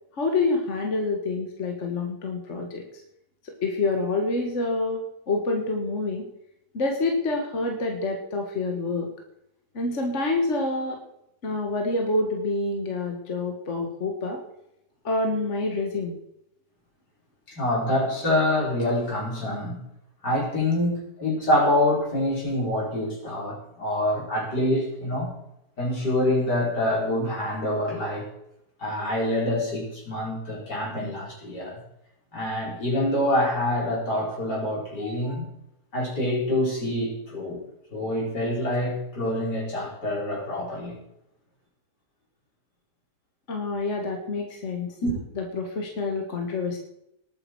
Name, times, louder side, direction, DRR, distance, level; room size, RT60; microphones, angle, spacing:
voice 1, 0.1-2.8 3.4-6.3 6.7-9.1 9.7-11.0 11.4-14.4 15.0-16.2 43.5-44.9 45.4-46.8, left 3 dB, 45° left, 2 dB, 1.8 m, -27 dB
voice 2, 17.5-19.8 20.2-25.3 25.8-28.3 28.8-31.8 32.3-35.5 35.9-37.6 37.9-40.9 45.0-45.1, left 1 dB, 75° left, -4 dB, 5.5 m, -26 dB
19.5 x 8.7 x 4.7 m, 0.82 s
omnidirectional pair, 1.8 m